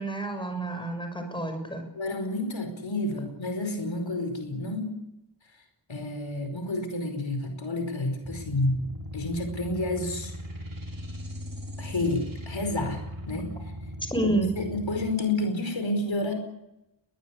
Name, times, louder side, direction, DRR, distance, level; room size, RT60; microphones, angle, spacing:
voice 1, 0.0-1.8 14.1-14.5, right 2 dB, 10° left, 6 dB, 6.2 m, -29 dB
voice 2, 2.0-5.0 5.9-8.9 9.1-10.3 11.8-13.0 13.3-13.5 14.2-16.3, left 2 dB, 80° left, 6 dB, 5.1 m, -30 dB
sound 1, 8.2-15.1, equal, 50° right, 5.1 m, -39 dB
22.0 x 21.0 x 8.5 m, 0.87 s
wide cardioid pair, 80°, 45 cm